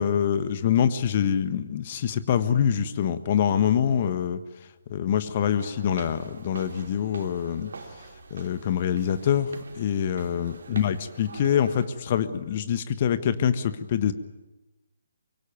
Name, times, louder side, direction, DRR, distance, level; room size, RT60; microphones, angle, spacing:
voice 1, 0.0-4.4 4.9-7.7 8.3-14.1, left 8 dB, 35° left, 12 dB, 1.3 m, -25 dB
sound 1, 5.6-11.9, right 4 dB, 55° right, 3.2 m, -44 dB
24.5 x 23.5 x 9.3 m, 1.0 s
figure-of-eight pair, 140°, 0 cm